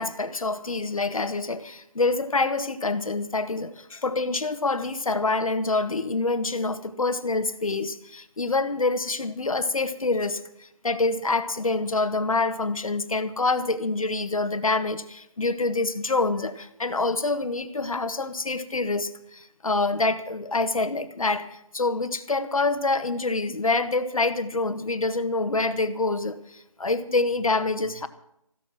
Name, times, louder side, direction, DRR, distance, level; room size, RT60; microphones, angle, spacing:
voice 1, 0.0-28.1, left 3 dB, 75° left, 11 dB, 1.4 m, -26 dB
15.0 x 12.5 x 6.0 m, 0.77 s
figure-of-eight pair, 165°, 18 cm